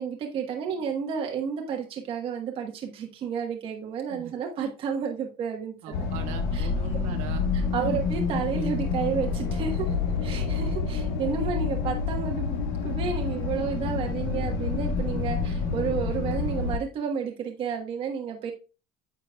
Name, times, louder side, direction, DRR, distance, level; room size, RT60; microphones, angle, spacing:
voice 1, 0.0-5.7 6.5-6.7 7.7-9.9 10.2-12.6 12.8-18.5, right 6 dB, 40° right, 2 dB, 1.2 m, -31 dB
voice 2, 5.8-7.5 7.8-8.0, right 8 dB, 65° right, 4 dB, 1.5 m, -39 dB
sound 1, 5.9-16.8, left 5 dB, 85° left, 1.7 m, -28 dB
9.3 x 6.8 x 2.3 m, 0.32 s
cardioid pair, 150°, 14 cm